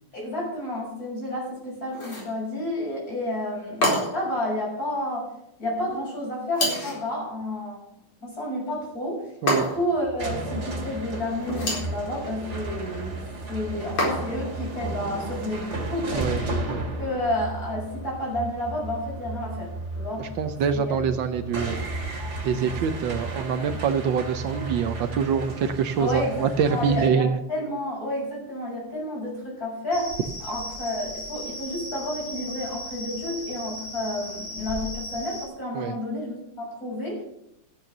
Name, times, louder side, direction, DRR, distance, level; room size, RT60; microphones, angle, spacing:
voice 1, 0.1-5.3 5.6-7.8 8.2-13.2 13.5-16.5 17.0-19.7 20.0-20.3 20.7-20.9 26.0-26.3 26.7-30.1 30.4-37.2, left 1 dB, 45° left, -3 dB, 7.2 m, -30 dB
sound 1, 1.9-2.4 3.8-4.3 6.5-7.1 9.5-10.0 11.4-12.0 14.0-14.5, left 1 dB, 75° left, 5.1 m, -27 dB
sound 2, 9.7-27.1, right 2 dB, 35° right, 2.4 m, -34 dB
voice 2, 20.2-21.8 22.4-27.4 35.7-36.0, right 6 dB, 70° right, 9 dB, 1.5 m, -25 dB
sound 3, 29.9-35.5, left 1 dB, 60° left, 3.5 m, -36 dB
13.5 x 8.7 x 6.6 m, 0.79 s
omnidirectional pair, 2.2 m